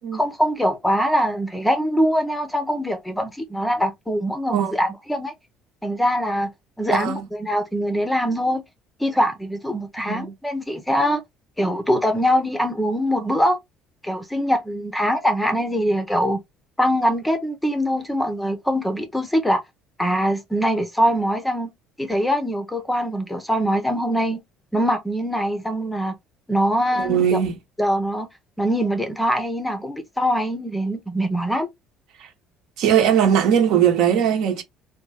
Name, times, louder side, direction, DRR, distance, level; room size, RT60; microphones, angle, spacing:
voice 1, 0.1-5.3 5.8-6.5 6.8-8.6 9.0-11.2 11.6-13.6 14.0-16.4 16.8-19.6 20.0-21.7 22.0-24.4 24.7-26.1 26.5-27.4 27.8-28.3 28.6-31.7, equal, 5° left, 0.6 m, -23 dB
voice 2, 6.9-7.2 10.0-10.3 26.9-27.6 32.2-32.3 32.8-34.6, right 9 dB, 65° right, 1.0 m, -19 dB
3.4 x 2.2 x 3.2 m
cardioid pair, 155°, 0 cm